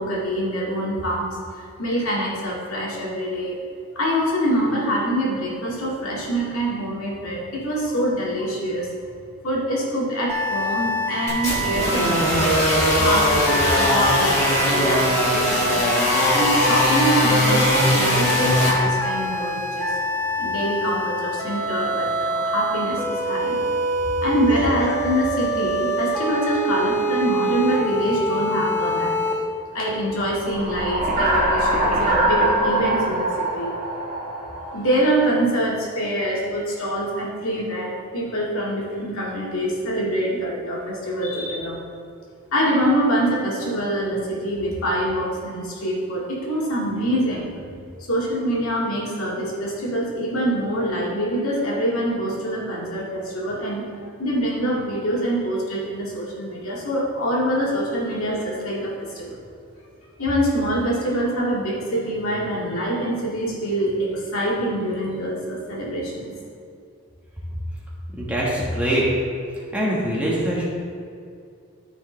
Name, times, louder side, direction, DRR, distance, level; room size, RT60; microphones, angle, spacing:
voice 1, 0.0-1.4 1.8-3.6 4.0-8.9 9.4-12.6 13.0-19.9 20.4-23.6 24.2-29.2 29.7-33.7 34.7-41.8 42.5-47.5 48.0-53.9 54.2-59.4 60.2-66.3, equal, 75° left, -4 dB, 2.1 m, -25 dB
sound 1, 10.3-29.3, equal, 10° left, 1.1 m, -26 dB
sound 2, 11.3-18.7, equal, 30° left, 1.6 m, -20 dB
sound 3, 30.4-35.1, right 1 dB, 30° right, 1.4 m, -22 dB
voice 2, 68.2-69.0 69.7-70.7, right 1 dB, 5° right, -6 dB, 1.5 m, -23 dB
13.5 x 4.9 x 3.3 m, 2.4 s
head